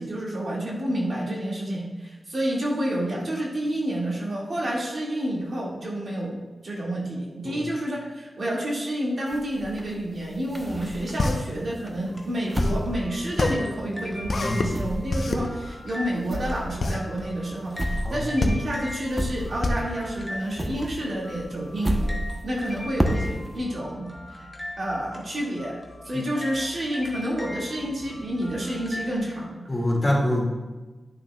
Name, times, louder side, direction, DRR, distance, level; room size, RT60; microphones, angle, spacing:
voice 1, 0.0-24.1 24.4-24.5 24.8-29.7, right 1 dB, 60° right, -3 dB, 2.0 m, -29 dB
sound 1, 9.3-11.4 11.9-14.0 14.2-19.9 20.2-23.6, equal, 20° right, 0.8 m, -31 dB
sound 2, 11.2-21.1, left 2 dB, 65° left, 0.7 m, -28 dB
sound 3, 11.9-29.2, left 1 dB, 5° left, 1.6 m, -41 dB
voice 2, 29.7-30.4, left 1 dB, 25° left, -2 dB, 2.1 m, -25 dB
11.0 x 6.2 x 2.3 m, 1.2 s
cardioid pair, 50°, 0 cm